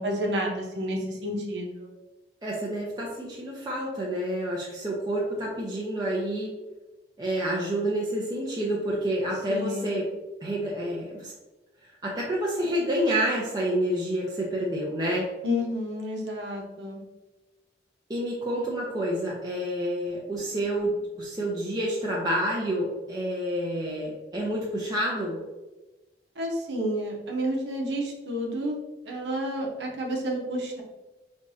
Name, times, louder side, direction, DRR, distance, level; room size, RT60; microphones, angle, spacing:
voice 1, 0.0-1.9 9.5-10.0 15.4-17.0 26.4-28.8 29.0-30.8, equal, 85° right, -1 dB, 1.0 m, -30 dB
voice 2, 2.4-6.5 7.2-10.0 10.4-11.3 12.0-15.3 18.1-25.4, right 1 dB, 20° right, -5 dB, 0.6 m, -28 dB
4.9 x 3.4 x 2.7 m, 1.1 s
head